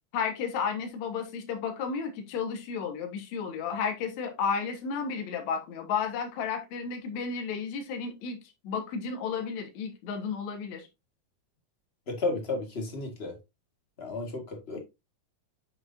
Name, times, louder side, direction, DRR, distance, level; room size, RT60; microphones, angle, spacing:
voice 1, 0.1-8.4 8.6-10.9, left 6 dB, 65° left, 2.5 m, -32 dB
voice 2, 12.1-13.3 14.0-14.8, left 3 dB, 30° left, 1.1 m, -33 dB
7.6 x 5.9 x 2.6 m
omnidirectional pair, 3.6 m